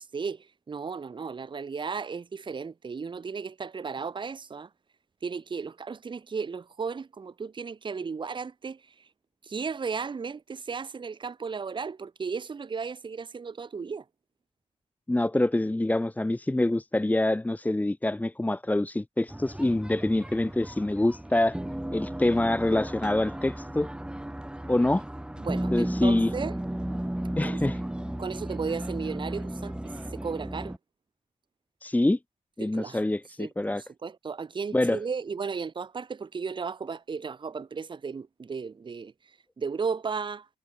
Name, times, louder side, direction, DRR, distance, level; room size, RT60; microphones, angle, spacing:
voice 1, 0.0-4.7 5.2-9.1 9.4-14.0 25.4-26.5 27.4-27.6 28.2-30.8 32.6-33.0 33.4-39.1 39.6-40.5, right 5 dB, 35° right, 1.3 m, -35 dB
voice 2, 15.1-21.6 21.9-23.9 24.7-25.0 25.7-26.3 27.4-27.8 31.8-32.2 32.6-33.8 34.7-35.0, left 1 dB, 10° left, 1.8 m, -25 dB
sound 1, 19.3-30.8, right 1 dB, 5° right, 3.3 m, -35 dB
cardioid pair, 95°, 13 cm